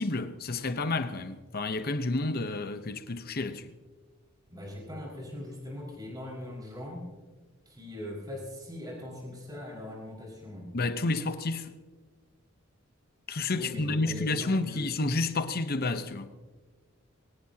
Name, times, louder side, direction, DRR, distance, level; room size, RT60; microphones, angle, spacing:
voice 1, 0.0-3.7 10.7-11.7 13.3-16.3, left 3 dB, 45° left, 0.9 m, -30 dB
voice 2, 4.5-7.1 7.7-10.7 13.5-14.9, left 1 dB, 20° right, 5.3 m, -40 dB
22.5 x 18.0 x 2.9 m
head